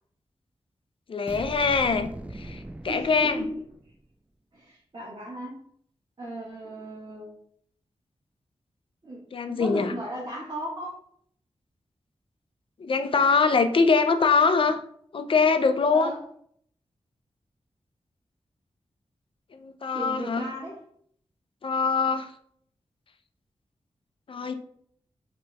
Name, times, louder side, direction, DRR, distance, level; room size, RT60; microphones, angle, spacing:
voice 1, 1.1-2.1 2.3-3.5 9.3-9.9 12.8-14.8 15.1-16.1 19.5-20.5 21.6-22.3 24.3-24.5, left 4 dB, 55° left, 8 dB, 0.5 m, -23 dB
sound 1, 1.3-4.0, right 1 dB, 10° right, 0.3 m, -40 dB
voice 2, 2.9-3.5 4.5-5.6 6.2-7.3 9.0-10.9 15.9-16.2 19.9-20.8, right 1 dB, 45° right, -7 dB, 1.6 m, -36 dB
5.2 x 3.0 x 3.4 m, 0.63 s
wide cardioid pair, 105°, 11 cm